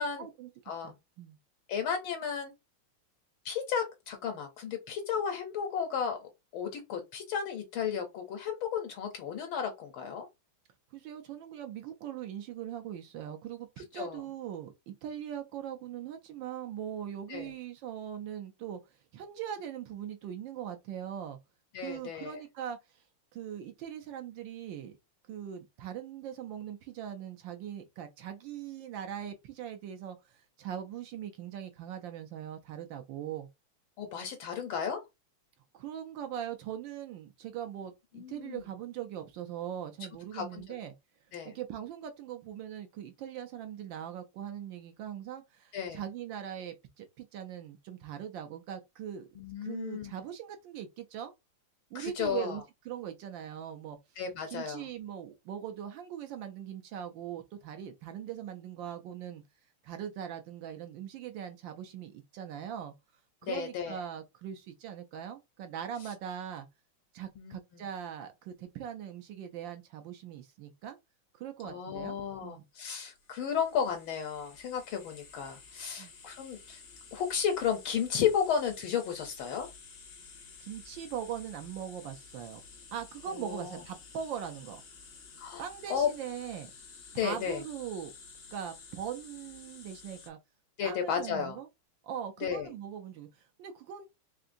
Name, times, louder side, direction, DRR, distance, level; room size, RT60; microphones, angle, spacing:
voice 1, 0.2-0.5 0.8-1.4 10.9-18.8 19.1-21.4 21.8-23.0 23.3-24.9 25.3-33.5 35.7-40.9 41.4-49.3 49.6-51.3 51.9-54.0 54.5-59.4 59.8-62.9 63.4-66.7 67.1-71.0 71.4-72.2 72.4-72.6 76.0-76.1 80.6-82.6 82.9-84.8 85.6-86.7 87.1-88.1 88.5-90.4 90.8-91.7 92.0-94.1, right 9 dB, 75° right, 1.2 m, -41 dB
voice 2, 1.7-2.5 3.4-10.3 13.9-14.2 17.3-17.5 21.7-22.3 34.0-35.0 38.1-38.7 40.3-40.6 41.3-41.5 45.7-46.0 49.4-50.2 51.9-52.6 54.2-54.8 63.4-64.0 67.4-67.8 71.6-76.8 77.1-79.7 83.3-83.8 85.4-86.1 87.1-87.6 90.8-91.6 92.4-92.7, left 7 dB, 70° left, 1.4 m, -33 dB
sound 1, 73.0-90.3, left 5 dB, 55° left, 0.8 m, -52 dB
3.7 x 3.3 x 2.5 m
omnidirectional pair, 2.3 m